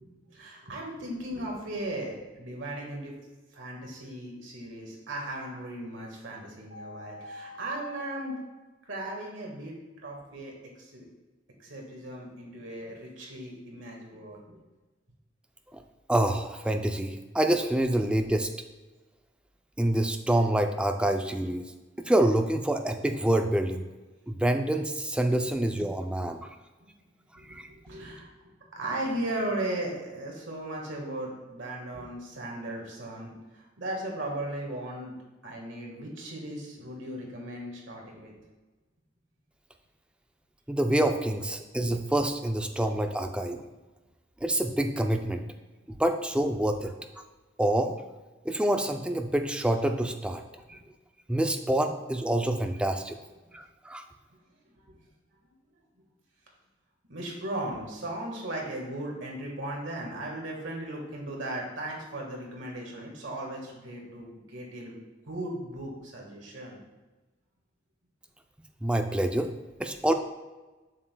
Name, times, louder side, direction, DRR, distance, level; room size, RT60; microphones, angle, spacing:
voice 1, 0.0-3.2 3.5-8.4 8.8-9.8 10.0-11.1 11.6-14.6 25.5-25.6 25.9-26.0 27.3-28.3 28.7-35.1 35.4-38.3 50.7-50.8 53.5-53.6 54.7-54.9 57.1-65.0 65.2-66.8, right 1 dB, 75° right, 0 dB, 1.6 m, -37 dB
sound 1, 6.7-8.3, left 2 dB, 55° right, 1.5 m, -44 dB
voice 2, 16.1-18.5 19.8-21.7 22.1-23.9 24.3-26.5 27.5-27.6 40.7-43.6 44.4-45.4 45.9-46.9 47.6-48.0 48.4-50.4 50.7-50.8 51.3-53.2 53.5-54.0 68.8-69.5 69.8-70.1, right 1 dB, 5° right, 5 dB, 0.4 m, -26 dB
7.3 x 6.4 x 2.2 m, 1.2 s
head